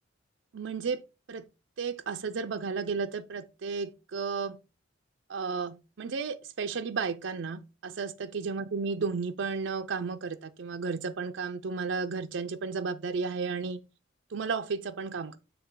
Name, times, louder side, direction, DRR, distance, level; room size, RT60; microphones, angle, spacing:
voice 1, 0.5-1.0 1.3-1.5 1.8-4.6 5.3-13.8 14.3-15.4, right 5 dB, 75° right, 0.5 m, -33 dB
7.1 x 3.2 x 5.5 m
head